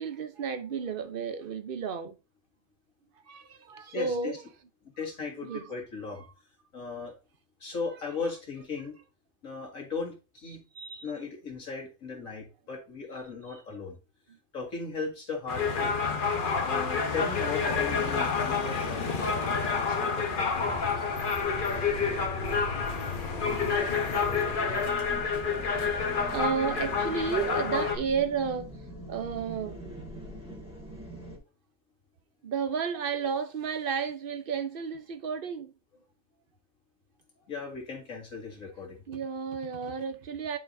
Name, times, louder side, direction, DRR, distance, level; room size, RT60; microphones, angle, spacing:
voice 1, 0.0-2.2 3.3-4.3 5.4-5.7 10.7-11.1 14.3-14.4 21.6-21.7 26.2-28.7 29.1-29.8 32.4-35.7 39.1-40.6, right 6 dB, 50° right, 0.8 m, -32 dB
voice 2, 3.9-4.4 4.8-6.3 6.7-7.1 7.6-9.0 9.4-10.6 11.0-14.0 14.5-15.9 16.6-20.7 37.4-39.0, left 4 dB, 85° left, 2.3 m, -37 dB
sound 1, 15.5-28.0, left 5 dB, 45° left, 1.0 m, -29 dB
sound 2, 20.5-31.4, left 2 dB, 5° right, 1.7 m, -41 dB
10.0 x 4.4 x 2.6 m
omnidirectional pair, 1.4 m